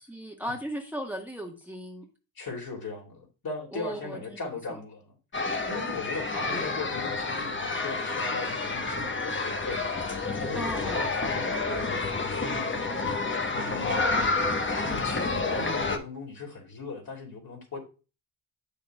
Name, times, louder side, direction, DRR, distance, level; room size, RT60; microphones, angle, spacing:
voice 1, 0.1-2.1 3.7-4.4 4.7-4.8 6.5-6.6 10.5-11.1, equal, 5° right, 1.5 m, -36 dB
voice 2, 2.4-5.2 5.7-9.9 10.4-17.8, left 4 dB, 50° left, 3.3 m, -38 dB
sound 1, 5.3-16.0, left 3 dB, 25° left, 1.3 m, -29 dB
8.2 x 6.7 x 2.4 m
supercardioid pair, 40°, 44 cm